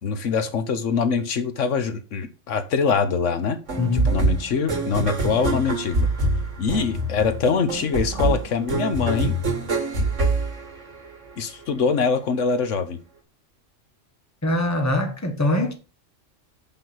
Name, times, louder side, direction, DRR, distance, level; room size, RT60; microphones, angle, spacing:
voice 1, 0.0-3.6 3.9-6.1 6.6-9.3 11.4-13.0, left 5 dB, 80° left, 1.3 m, -23 dB
sound 1, 3.7-11.3, right 2 dB, 80° right, 2.2 m, -25 dB
voice 2, 3.8-4.1 14.4-15.7, left 2 dB, 15° left, 1.2 m, -23 dB
5.9 x 5.6 x 5.6 m
omnidirectional pair, 1.3 m